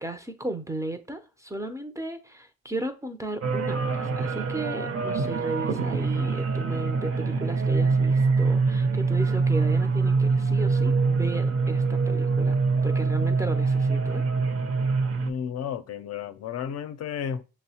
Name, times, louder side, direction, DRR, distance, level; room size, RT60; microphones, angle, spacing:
voice 1, 0.0-12.6 12.8-14.2, right 2 dB, 10° right, 0.4 m, -35 dB
sound 1, 3.4-15.3, right 4 dB, 50° right, 0.6 m, -24 dB
voice 2, 15.2-17.4, left 8 dB, 55° left, 0.5 m, -32 dB
6.0 x 2.0 x 2.8 m
cardioid pair, 90°, 30 cm